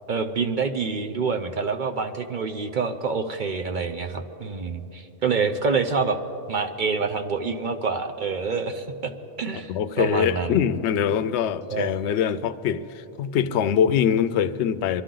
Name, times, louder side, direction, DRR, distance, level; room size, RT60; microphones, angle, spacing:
voice 1, 0.1-6.2 6.5-9.1 9.4-10.6 11.7-12.0, right 5 dB, 50° right, 7 dB, 0.6 m, -27 dB
voice 2, 9.7-15.0, left 8 dB, 70° left, 12 dB, 0.8 m, -23 dB
25.0 x 11.5 x 3.8 m, 2.9 s
omnidirectional pair, 1.3 m